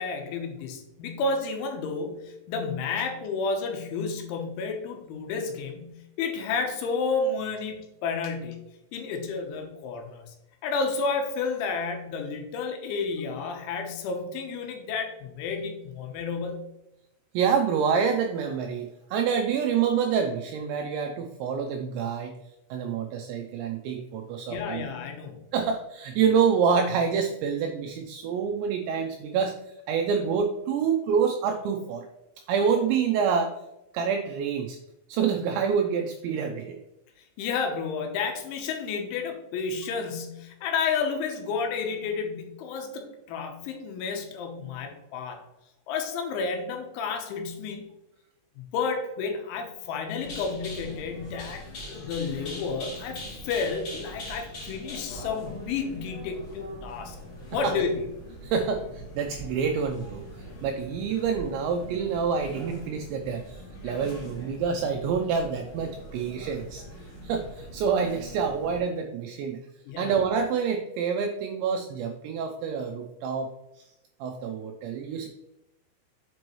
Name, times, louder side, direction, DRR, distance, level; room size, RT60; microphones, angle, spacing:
voice 1, 0.0-8.6 8.9-10.3 10.6-16.6 24.5-25.4 37.4-45.4 45.9-47.9 48.6-57.2 57.5-58.1 69.9-70.1, left 4 dB, 80° left, 4 dB, 3.1 m, -31 dB
voice 2, 17.3-22.3 22.7-24.8 25.5-29.5 29.9-32.1 32.5-33.5 33.9-34.8 35.1-36.8 57.6-57.7 58.4-60.2 60.6-66.8 67.2-69.6 70.0-73.8 74.2-75.3, right 6 dB, 90° right, 4 dB, 2.6 m, -27 dB
sound 1, 50.2-68.8, left 1 dB, 50° left, 1.6 m, -42 dB
7.6 x 5.2 x 3.0 m, 0.91 s
omnidirectional pair, 5.8 m